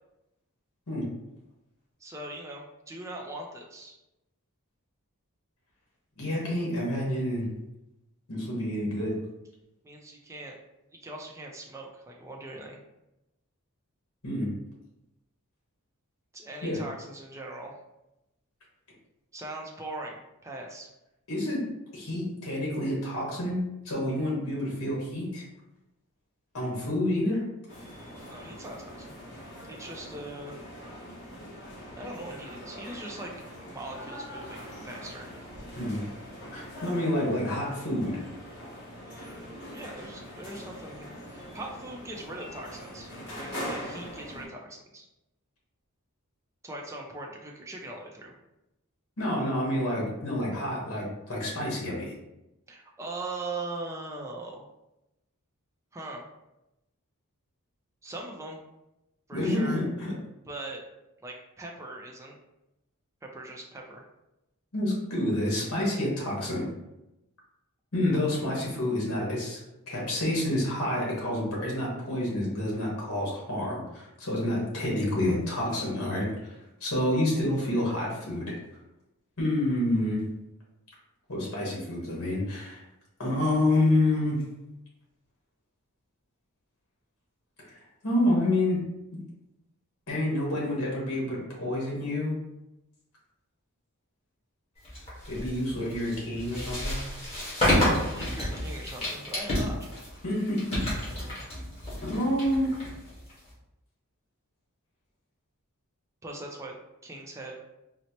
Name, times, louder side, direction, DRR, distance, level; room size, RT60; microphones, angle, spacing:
voice 1, 2.0-4.0 9.8-10.6 10.9-12.8 16.3-17.7 19.3-20.9 28.3-29.1 29.7-30.5 32.0-35.3 39.7-43.1 43.4-45.1 46.6-48.3 52.7-54.6 55.9-56.2 58.0-58.6 59.3-59.8 60.5-60.8 61.2-62.3 63.3-64.0 98.2-99.9 106.2-106.7 107.0-107.7, right 2 dB, 15° right, 0 dB, 0.4 m, -40 dB
voice 2, 6.2-7.5 8.3-9.2 14.2-14.5 16.6-16.8 21.3-21.6 21.9-25.5 26.5-27.4 35.7-36.0 36.5-38.2 49.2-52.1 59.3-60.1 64.7-66.7 67.9-69.6 69.9-78.5 79.4-80.2 81.3-82.8 83.2-84.4 87.7-87.8 88.0-88.8 90.1-92.4 95.3-97.0 100.2-100.8 102.0-102.7, left 1 dB, 70° left, -4 dB, 1.3 m, -28 dB
sound 1, 27.7-44.4, equal, 50° left, 1.0 m, -42 dB
sound 2, 94.8-103.5, left 1 dB, 25° left, 1.3 m, -30 dB
4.1 x 2.0 x 2.8 m, 0.93 s
head